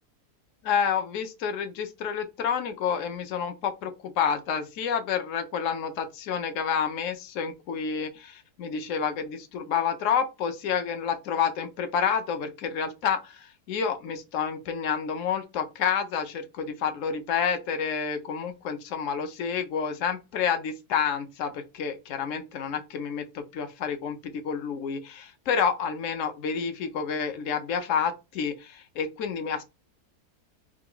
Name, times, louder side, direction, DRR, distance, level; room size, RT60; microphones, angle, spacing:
voice 1, 0.6-29.6, left 7 dB, 60° left, 0.9 m, -29 dB
3.4 x 2.3 x 3.6 m
omnidirectional pair, 1.7 m